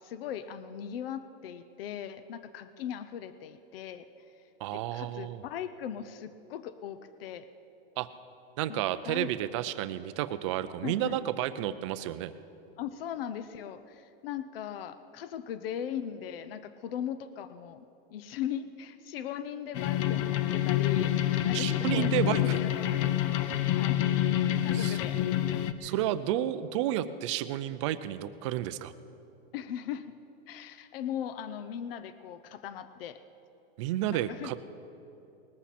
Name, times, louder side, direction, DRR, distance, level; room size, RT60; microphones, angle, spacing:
voice 1, 0.0-4.1 4.7-7.5 8.7-9.3 10.8-11.2 12.8-17.8 18.1-21.1 21.5-23.0 23.3-23.4 23.7-24.0 24.3-25.2 25.8-25.9 29.5-30.1 30.5-33.2 34.1-34.6, left 9 dB, 70° left, 13 dB, 0.7 m, -39 dB
voice 2, 4.6-5.4 8.0-8.1 8.6-12.3 21.5-22.6 24.7-25.0 25.8-28.9 33.8-34.6, right 12 dB, 30° right, 12 dB, 0.4 m, -31 dB
sound 1, 19.7-25.7, left 12 dB, 35° left, 0.5 m, -27 dB
20.0 x 14.0 x 4.3 m, 2.8 s
supercardioid pair, 165°, 30 cm